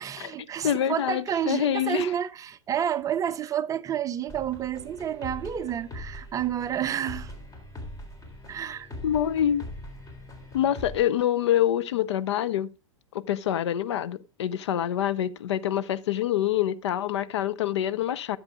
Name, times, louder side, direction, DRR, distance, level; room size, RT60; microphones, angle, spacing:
voice 1, 0.0-7.3 8.5-8.9, right 9 dB, 20° right, 0.6 m, -30 dB
voice 2, 0.6-2.1 9.0-9.6 10.5-12.7 13.3-18.4, left 11 dB, 60° left, 0.7 m, -26 dB
sound 1, 4.3-11.0, left 1 dB, 20° left, 3.5 m, -42 dB
13.5 x 7.7 x 3.6 m
figure-of-eight pair, 100°, 16 cm